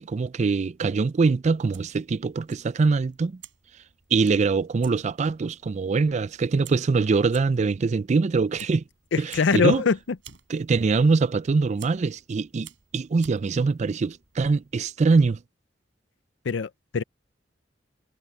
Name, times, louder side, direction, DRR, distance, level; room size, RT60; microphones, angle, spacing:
voice 1, 0.0-3.4 4.1-8.8 9.2-9.8 10.5-15.4, right 4 dB, 40° right, 0.4 m, -23 dB
Fire, 1.5-14.9, right 9 dB, 85° right, 5.5 m, -53 dB
voice 2, 9.1-10.0 16.5-17.0, left 5 dB, 80° left, 0.5 m, -22 dB
head